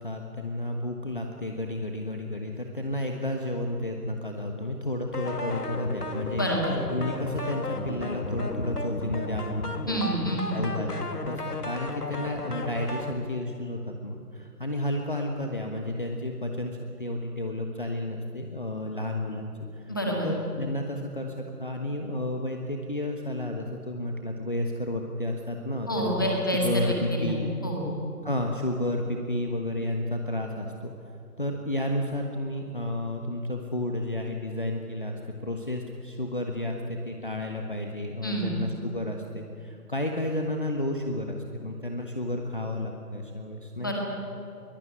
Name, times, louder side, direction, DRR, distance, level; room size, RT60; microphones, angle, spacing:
voice 1, 0.0-6.5 6.9-10.2 10.5-19.9 20.2-27.5 28.2-30.9 31.4-43.9, left 1 dB, 30° left, 3 dB, 1.3 m, -32 dB
sound 1, 5.1-13.1, left 2 dB, 75° left, 2.7 m, -33 dB
voice 2, 6.3-6.7 9.9-10.5 19.9-20.3 25.9-27.8 38.2-38.5 43.8-43.9, equal, 15° left, -2 dB, 1.9 m, -28 dB
23.0 x 19.0 x 9.4 m, 2.8 s
figure-of-eight pair, 175°, 47 cm